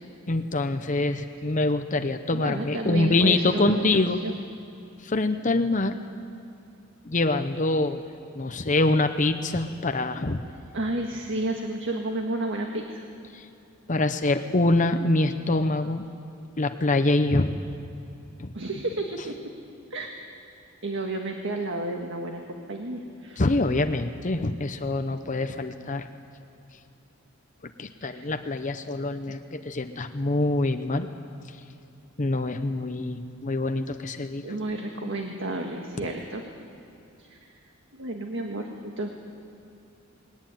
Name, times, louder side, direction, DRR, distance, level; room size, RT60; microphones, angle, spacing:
voice 1, 0.3-4.2 5.0-6.0 7.1-8.0 8.3-10.4 13.3-13.4 13.9-16.0 16.6-17.5 18.4-18.5 23.4-26.1 27.8-31.1 32.2-34.4, left 2 dB, 40° left, 8 dB, 0.8 m, -25 dB
voice 2, 2.3-4.4 10.7-13.0 18.5-19.5 19.9-20.1 20.8-23.4 28.0-28.3 29.3-29.4 34.4-36.4 37.2-37.4 37.9-39.1, right 2 dB, 60° right, 3 dB, 1.7 m, -31 dB
21.0 x 19.0 x 9.2 m, 2.7 s
head